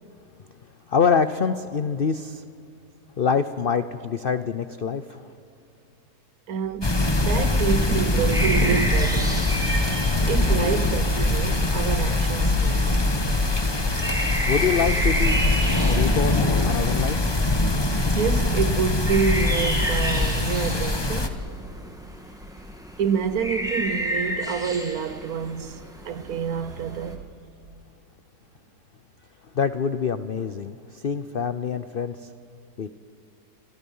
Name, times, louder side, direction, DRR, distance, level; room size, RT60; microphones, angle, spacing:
voice 1, 0.9-2.4 3.2-5.2 13.6-13.7 14.5-15.4 15.8-17.2 29.5-32.3 32.8-32.9, left 6 dB, 75° left, 0.5 m, -25 dB
voice 2, 6.5-13.0 18.2-21.3 23.0-27.3, right 6 dB, 60° right, 1.2 m, -27 dB
sound 1, 6.8-21.3, left 2 dB, 15° left, 1.1 m, -23 dB
sound 2, 8.3-27.1, equal, ahead, 2.2 m, -32 dB
29.0 x 25.5 x 5.5 m
omnidirectional pair, 1.9 m